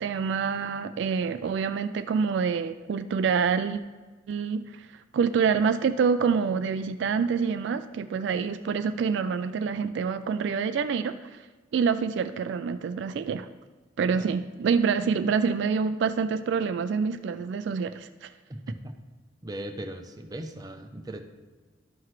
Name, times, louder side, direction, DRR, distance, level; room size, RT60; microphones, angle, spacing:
voice 1, 0.0-3.8 4.3-4.9 5.1-11.4 11.7-13.5 14.0-18.3, right 6 dB, 65° right, 11 dB, 0.3 m, -26 dB
voice 2, 18.5-18.9 19.4-21.2, right 1 dB, 20° right, 5 dB, 0.6 m, -38 dB
11.5 x 5.7 x 3.1 m, 1.3 s
head